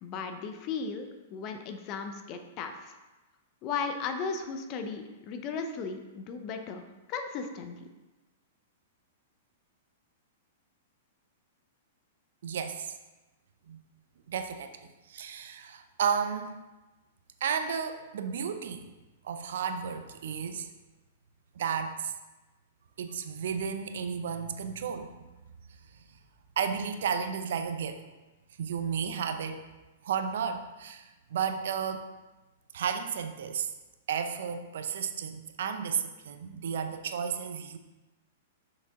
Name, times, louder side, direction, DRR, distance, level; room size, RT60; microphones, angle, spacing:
voice 1, 0.0-2.9 3.6-6.8 7.1-7.9, left 5 dB, 40° left, 7 dB, 0.8 m, -36 dB
voice 2, 12.4-12.9 13.7-13.8 14.3-16.6 17.4-18.8 19.2-20.7 21.6-22.1 23.0-25.1 26.6-28.0 28.6-29.6 30.0-32.1 32.7-33.7 34.1-37.8, right 7 dB, 70° right, 8 dB, 0.7 m, -33 dB
6.3 x 6.3 x 3.7 m, 1.1 s
hypercardioid pair, 110°, 0 cm